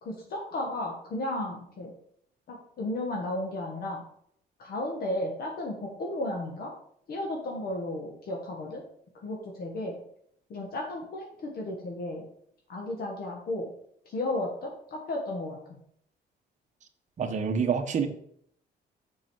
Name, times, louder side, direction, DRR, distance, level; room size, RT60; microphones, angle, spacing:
voice 1, 0.0-1.9 2.5-4.0 4.6-6.7 7.1-8.8 9.2-9.9 10.5-12.2 12.7-13.7 14.1-15.8, left 1 dB, 55° left, 0 dB, 1.3 m, -34 dB
voice 2, 17.2-18.1, right 6 dB, 40° right, 5 dB, 1.0 m, -27 dB
6.9 x 5.4 x 4.7 m, 0.67 s
cardioid pair, 140°, 18 cm